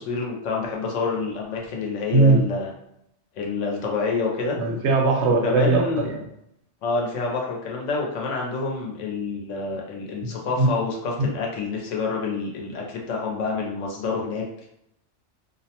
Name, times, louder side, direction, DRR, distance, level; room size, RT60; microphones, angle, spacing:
voice 1, 0.1-2.7 3.4-4.6 5.4-6.1 6.8-14.4, left 4 dB, 85° left, -1 dB, 1.0 m, -27 dB
voice 2, 2.1-2.5 4.6-6.2 10.2-10.7 11.2-11.3, right 3 dB, 70° right, 2 dB, 0.8 m, -20 dB
2.5 x 2.0 x 2.8 m, 0.78 s
omnidirectional pair, 1.2 m